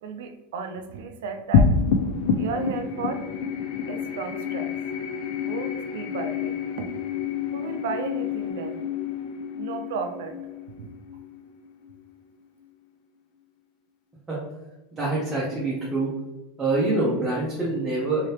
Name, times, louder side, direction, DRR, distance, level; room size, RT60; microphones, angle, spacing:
voice 1, 0.0-1.7 2.4-3.3 3.9-4.7 5.4-6.9 7.5-8.8 9.6-10.4 10.8-10.9, right 5 dB, 80° right, 6 dB, 0.4 m, -34 dB
sound 1, 1.5-12.2, left 6 dB, 55° left, 0.3 m, -28 dB
voice 2, 14.9-16.1 16.6-18.3, right 2 dB, 15° right, -7 dB, 0.7 m, -25 dB
2.9 x 2.8 x 3.2 m, 1.1 s
supercardioid pair, 160°, 0 cm